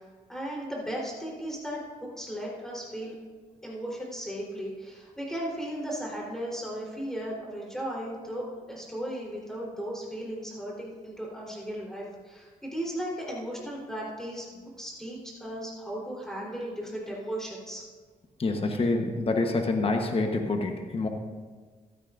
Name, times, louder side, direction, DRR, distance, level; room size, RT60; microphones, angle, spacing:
voice 1, 0.3-3.2 3.6-17.8, equal, 5° left, -4 dB, 3.9 m, -36 dB
voice 2, 18.4-21.1, left 3 dB, 40° left, 4 dB, 1.2 m, -27 dB
15.5 x 12.5 x 2.6 m, 1.5 s
cardioid pair, 95°, 15 cm